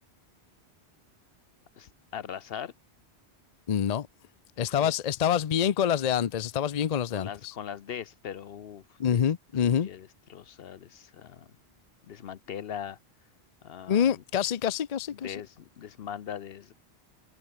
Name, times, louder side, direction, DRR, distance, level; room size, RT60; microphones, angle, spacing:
voice 1, 1.8-2.7 4.6-4.9 7.1-8.8 9.1-9.2 9.6-11.5 12.1-13.0 13.6-14.2 15.1-16.7, left 8 dB, 65° left, 0.9 m, -40 dB
voice 2, 3.7-4.1 4.6-7.5 9.0-9.9 13.9-15.3, left 8 dB, 45° left, 0.6 m, -26 dB
omnidirectional pair, 1.1 m